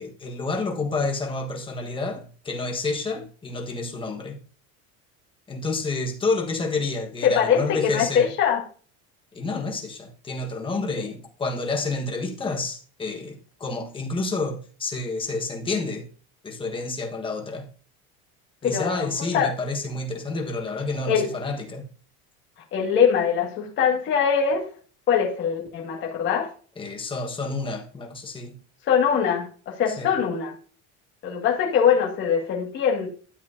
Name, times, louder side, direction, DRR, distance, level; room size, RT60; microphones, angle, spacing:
voice 1, 0.0-4.4 5.5-8.3 9.3-16.1 16.4-17.7 18.6-21.8 26.8-28.6 30.0-30.1, left 3 dB, 15° left, 1.4 m, -29 dB
voice 2, 7.2-8.6 11.0-11.1 18.6-19.5 21.1-21.3 22.7-24.7 25.1-26.5 28.9-30.6 31.2-33.1, left 7 dB, 35° left, 2.1 m, -22 dB
12.5 x 7.7 x 2.7 m
cardioid pair, 170°, 32 cm